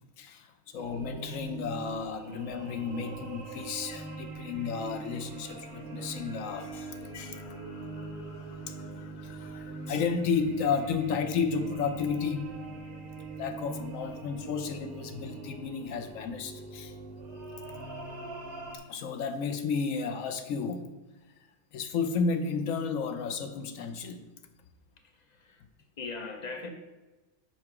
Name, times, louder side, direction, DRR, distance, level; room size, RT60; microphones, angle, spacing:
voice 1, 0.2-12.5 13.4-17.0 18.7-20.9 21.7-24.2, left 5 dB, 65° left, 9 dB, 1.0 m, -33 dB
sound 1, 0.7-18.8, right 3 dB, 85° right, 1.7 m, -42 dB
voice 2, 25.0-25.6 26.0-26.7, left 4 dB, 40° left, 5 dB, 0.6 m, -40 dB
5.7 x 4.7 x 5.9 m, 1.1 s
omnidirectional pair, 1.6 m